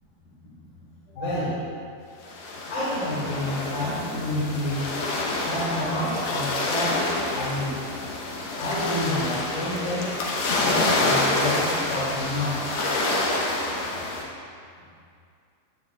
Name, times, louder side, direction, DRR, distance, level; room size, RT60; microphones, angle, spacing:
voice 1, 1.1-1.6 2.7-4.9 5.5-7.8 8.6-10.2 10.6-12.6, left 1 dB, 65° left, -11 dB, 3.9 m, -29 dB
sound 1, 2.2-14.2, left 2 dB, 90° left, 1.5 m, -27 dB
16.5 x 7.1 x 2.4 m, 2.3 s
omnidirectional pair, 4.6 m